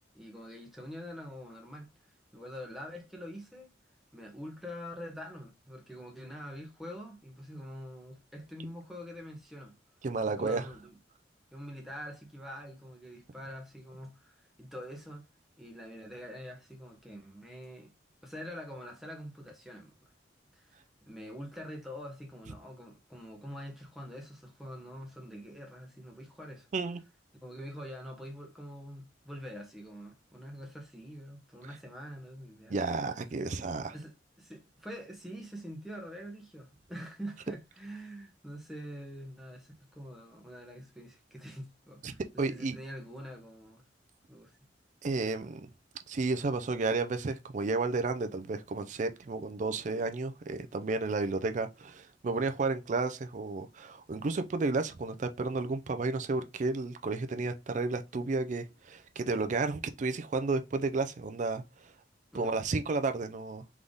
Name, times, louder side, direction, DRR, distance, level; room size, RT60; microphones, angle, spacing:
voice 1, 0.1-1.9 2.3-3.7 4.1-9.8 10.4-11.0 11.5-15.3 15.6-17.9 18.2-19.9 20.5-26.7 27.4-32.8 33.9-34.1 34.4-43.8 44.3-44.6 62.3-62.6, equal, ahead, 1.1 m, -45 dB
voice 2, 10.0-10.7 26.7-27.0 32.7-33.9 42.0-42.8 45.0-45.6 46.1-61.9 62.3-63.6, right 3 dB, 40° right, 0.4 m, -32 dB
3.6 x 3.4 x 3.9 m
head